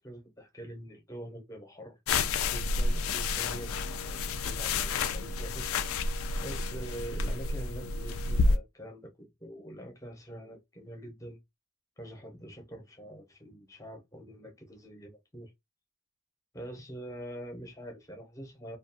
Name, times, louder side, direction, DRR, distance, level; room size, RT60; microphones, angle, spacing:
voice 1, 0.0-2.0 2.3-3.8 4.1-5.8 6.4-11.4 12.0-15.5 16.5-18.8, equal, 15° left, 0.6 m, -45 dB
sound 1, 2.1-8.6, left 3 dB, 80° left, 0.3 m, -30 dB
2.3 x 2.3 x 2.6 m
head